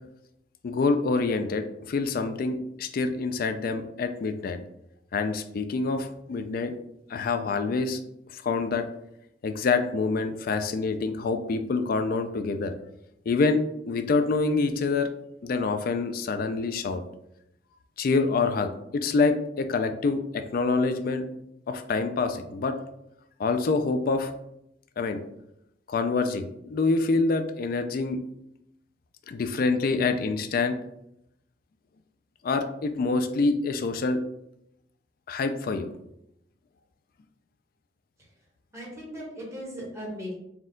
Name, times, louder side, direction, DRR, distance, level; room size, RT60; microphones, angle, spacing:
voice 1, 0.6-4.6 5.1-6.7 7.1-8.0 8.3-8.9 9.4-12.7 13.3-15.1 15.4-17.0 18.0-21.2 21.7-22.8 23.4-24.3 25.0-25.2 25.9-28.2 29.3-30.8 32.4-34.2 35.3-35.9, left 3 dB, 50° left, 8 dB, 0.3 m, -26 dB
voice 2, 38.7-40.3, equal, 15° right, -4 dB, 1.4 m, -37 dB
4.2 x 2.3 x 3.7 m, 0.80 s
head